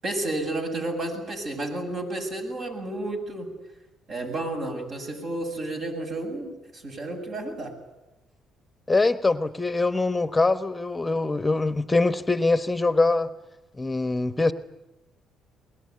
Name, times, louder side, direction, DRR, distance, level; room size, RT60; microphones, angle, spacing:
voice 1, 0.0-3.5 4.1-7.7, right 2 dB, 55° right, 3 dB, 7.9 m, -31 dB
voice 2, 8.9-13.3 13.8-14.5, left 3 dB, 15° left, 11 dB, 1.0 m, -23 dB
23.5 x 21.0 x 9.6 m, 1.0 s
cardioid pair, 80°, 0 cm